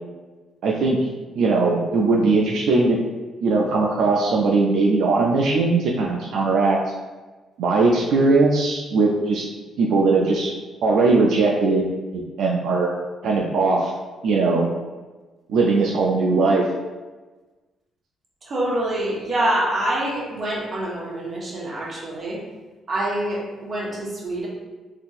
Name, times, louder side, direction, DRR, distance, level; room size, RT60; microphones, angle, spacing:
voice 1, 0.6-1.0 1.4-3.0 3.4-6.8 7.6-9.5 9.8-10.5 10.8-11.9 12.1-12.9 13.2-13.9 14.2-14.7 15.5-16.6, right 3 dB, 75° right, -2 dB, 0.4 m, -19 dB
voice 2, 18.5-22.4 22.9-24.5, right 1 dB, 40° right, -5 dB, 1.1 m, -26 dB
3.6 x 2.7 x 2.4 m, 1.2 s
cardioid pair, 90°, 0 cm